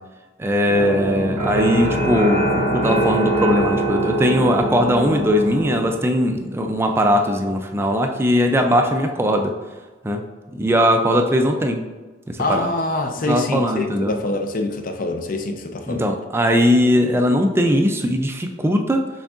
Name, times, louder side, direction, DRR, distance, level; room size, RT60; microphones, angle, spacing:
voice 1, 0.4-9.5 10.0-10.2 10.5-11.8 12.3-12.7 13.3-14.1 15.9-19.1, equal, 15° right, 4 dB, 0.3 m, -19 dB
sound 1, 0.7-5.9, right 1 dB, 35° right, 1.5 m, -22 dB
voice 2, 12.4-16.1, left 2 dB, 45° left, 6 dB, 0.5 m, -25 dB
6.1 x 3.6 x 2.4 m, 1.2 s
head